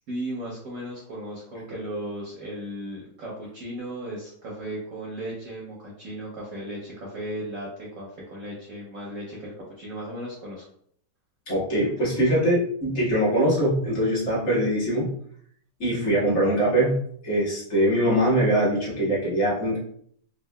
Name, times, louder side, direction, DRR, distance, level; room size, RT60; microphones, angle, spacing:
voice 1, 0.1-10.6, right 1 dB, 60° right, -4 dB, 1.0 m, -36 dB
voice 2, 11.5-15.1 15.8-19.8, right 1 dB, 40° left, -6 dB, 1.4 m, -22 dB
3.7 x 2.5 x 2.2 m, 0.65 s
omnidirectional pair, 2.0 m